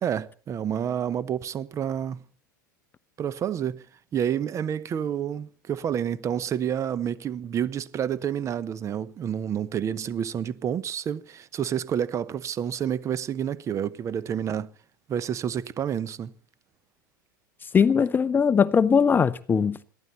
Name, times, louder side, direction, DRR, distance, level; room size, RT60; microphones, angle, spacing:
voice 1, 0.0-2.3 3.2-3.9 4.1-14.7 15.1-16.3, right 9 dB, 30° right, 0.9 m, -29 dB
voice 2, 17.7-19.8, left 6 dB, 20° left, 0.7 m, -20 dB
21.5 x 15.0 x 4.1 m
figure-of-eight pair, 85°, 11 cm